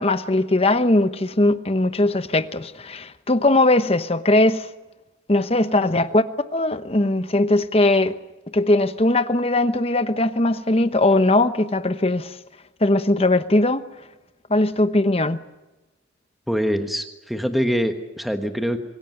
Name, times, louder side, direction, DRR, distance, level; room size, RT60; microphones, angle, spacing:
voice 1, 0.0-4.7 5.3-6.2 6.5-8.1 8.5-12.4 12.8-13.8 14.5-15.4, left 2 dB, 30° left, 1.0 m, -19 dB
voice 2, 16.5-18.8, equal, ahead, 1.3 m, -24 dB
25.0 x 17.0 x 9.2 m
head